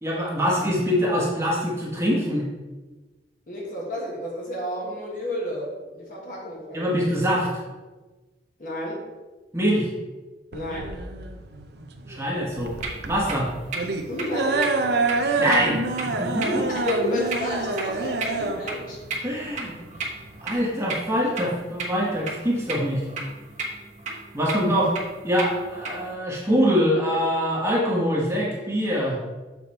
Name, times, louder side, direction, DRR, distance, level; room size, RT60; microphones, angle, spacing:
voice 1, 0.0-2.5 6.7-7.6 9.5-9.9 12.1-12.7 13.1-13.5 15.4-15.8 16.0-16.5 19.2-19.8 20.4-23.0 24.3-24.9 25.2-29.2, equal, 15° right, -5 dB, 1.1 m, -24 dB
voice 2, 3.5-6.9 8.6-9.0 10.5-10.9 14.0-14.7 16.4-19.0, left 1 dB, 50° left, -3 dB, 1.4 m, -30 dB
sound 1, 10.5-20.5, right 3 dB, 65° right, 0.6 m, -27 dB
sound 2, 12.6-26.1, right 3 dB, 40° right, 1.2 m, -36 dB
7.0 x 4.2 x 4.3 m, 1.3 s
head